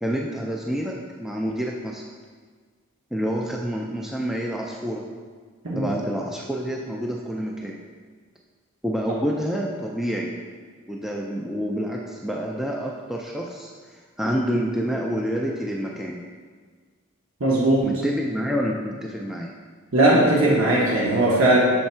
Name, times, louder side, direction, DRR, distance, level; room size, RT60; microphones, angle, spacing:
voice 1, 0.0-2.0 3.1-5.0 5.8-7.7 8.8-10.3 10.9-13.7 14.2-16.2 17.8-19.5, equal, ahead, -2 dB, 0.3 m, -28 dB
voice 2, 17.4-17.9 19.9-21.6, right 1 dB, 75° right, -4 dB, 1.0 m, -18 dB
6.4 x 3.5 x 4.3 m, 1.5 s
head